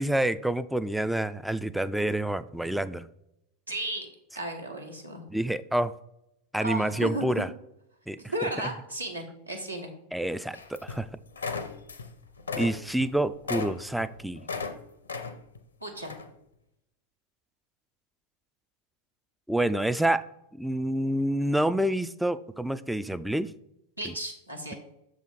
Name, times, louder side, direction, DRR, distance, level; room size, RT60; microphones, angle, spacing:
voice 1, 0.0-3.1 5.3-5.9 6.5-7.5 8.1-8.2 10.1-11.1 12.6-14.5 19.5-20.3 20.5-23.5, right 1 dB, ahead, 14 dB, 0.3 m, -28 dB
voice 2, 3.7-4.1 4.3-5.2 6.6-7.3 8.2-9.9 15.8-16.1 24.0-24.8, right 1 dB, 85° right, 2 dB, 1.3 m, -34 dB
sound 1, 10.5-11.1 11.3-12.1 12.4-14.7 15.1-15.6 16.0-16.3, left 5 dB, 75° left, 0.7 m, -35 dB
6.7 x 3.9 x 4.9 m, 0.82 s
figure-of-eight pair, 90°, 0 cm